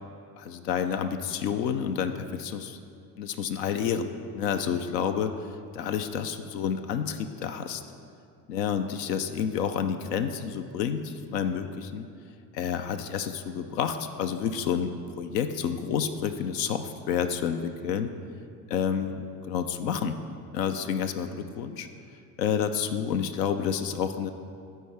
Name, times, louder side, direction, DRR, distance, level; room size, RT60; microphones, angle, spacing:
voice 1, 0.4-2.8 3.2-5.3 5.7-7.8 8.5-12.1 12.5-18.1 18.7-20.2 20.5-21.9 22.4-24.3, left 7 dB, 80° left, 8 dB, 0.5 m, -29 dB
11.5 x 4.4 x 3.4 m, 2.4 s
hypercardioid pair, 55°, 48 cm